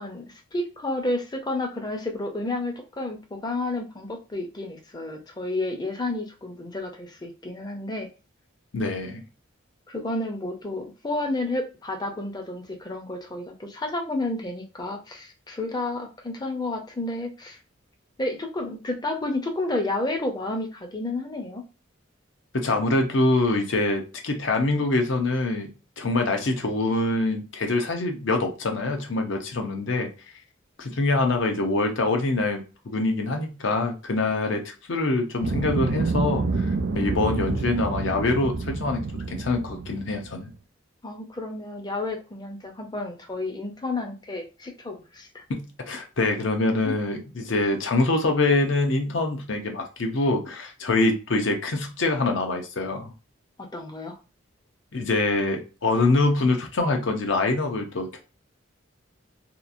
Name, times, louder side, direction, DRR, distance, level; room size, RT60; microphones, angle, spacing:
voice 1, 0.0-8.1 9.9-17.6 18.2-21.6 41.0-45.4 46.8-46.9 53.7-54.2, left 2 dB, 20° left, 4 dB, 0.5 m, -31 dB
voice 2, 8.7-9.2 22.5-25.7 26.0-30.1 30.8-36.7 36.9-40.5 45.5-53.1 54.9-58.2, left 2 dB, 65° left, 5 dB, 0.6 m, -25 dB
sound 1, 35.4-40.4, right 3 dB, 50° right, 0.4 m, -28 dB
2.9 x 2.3 x 2.5 m, 0.32 s
head